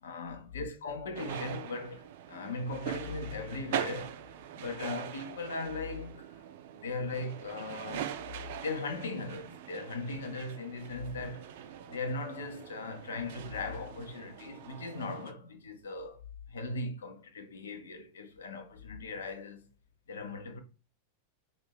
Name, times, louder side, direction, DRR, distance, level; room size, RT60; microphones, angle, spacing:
voice 1, 0.0-4.2 4.6-6.4 6.7-8.1 8.6-11.5 11.9-16.2 16.5-19.6 20.1-20.6, left 3 dB, 65° left, 0.7 m, -38 dB
sound 1, 1.2-15.3, right 10 dB, 55° right, 0.4 m, -42 dB
5.1 x 2.6 x 3.4 m
figure-of-eight pair, 90°, 0 cm